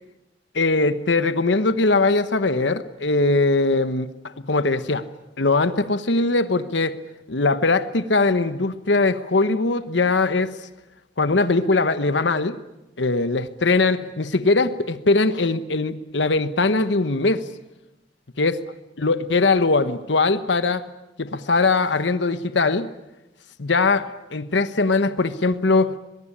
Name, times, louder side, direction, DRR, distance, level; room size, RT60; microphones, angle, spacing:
voice 1, 0.5-5.0 5.4-7.0 7.3-10.5 11.2-12.6 13.0-17.5 18.4-18.5 19.0-20.8 21.2-22.9 23.6-25.9, left 3 dB, 85° left, 12 dB, 1.1 m, -21 dB
23.0 x 22.0 x 10.0 m, 0.96 s
head